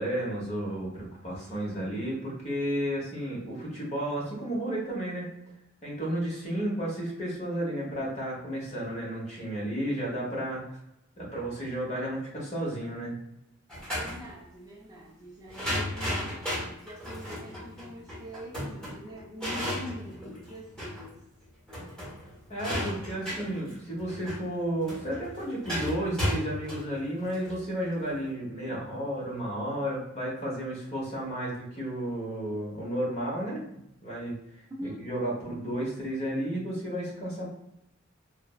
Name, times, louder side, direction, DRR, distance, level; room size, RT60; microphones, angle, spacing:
voice 1, 0.0-5.3 5.8-10.6 11.2-13.1 22.5-33.6 34.0-34.4 34.8-37.5, right 1 dB, 35° left, -4 dB, 0.9 m, -32 dB
voice 2, 1.5-2.1 13.9-16.4 16.8-21.2 34.7-35.0, equal, 20° right, -3 dB, 0.4 m, -44 dB
sound 1, 13.7-14.2 15.5-21.1 21.4-21.5 21.7-28.1, equal, 5° left, 1.2 m, -34 dB
3.2 x 2.1 x 2.3 m, 0.83 s
head